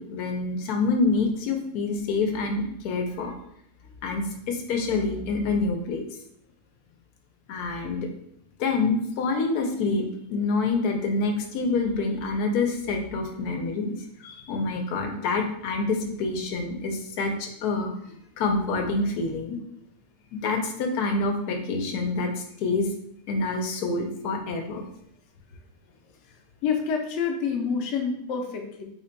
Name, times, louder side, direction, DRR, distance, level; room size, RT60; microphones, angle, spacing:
voice 1, 0.0-3.3 4.0-6.0 7.5-8.1 8.6-19.6 20.3-22.9 23.3-24.9, left 3 dB, 85° left, 4 dB, 1.1 m, -27 dB
voice 2, 26.6-28.8, left 6 dB, 65° left, 2 dB, 0.8 m, -27 dB
3.4 x 2.2 x 3.8 m, 0.71 s
omnidirectional pair, 1.6 m